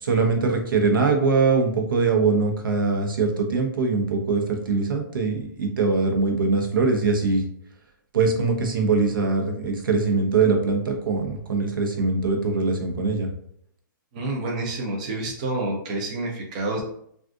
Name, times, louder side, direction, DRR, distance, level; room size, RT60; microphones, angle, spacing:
voice 1, 0.0-7.4 8.1-13.3, right 4 dB, 80° right, 3 dB, 0.8 m, -22 dB
voice 2, 14.1-16.8, right 2 dB, 20° right, -1 dB, 0.4 m, -28 dB
3.6 x 2.4 x 2.4 m, 0.67 s
hypercardioid pair, 175°, 11 cm